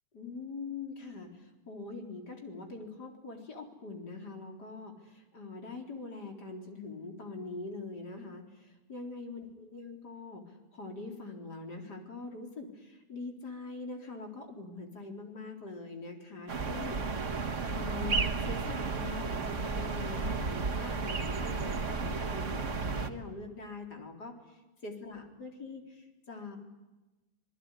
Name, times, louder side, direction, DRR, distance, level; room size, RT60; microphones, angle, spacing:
voice 1, 0.1-17.4 17.6-26.6, left 3 dB, 80° left, 3 dB, 4.6 m, -43 dB
sound 1, 16.5-23.1, right 4 dB, 50° right, 1.9 m, -33 dB
26.5 x 21.0 x 9.9 m, 1.1 s
omnidirectional pair, 1.7 m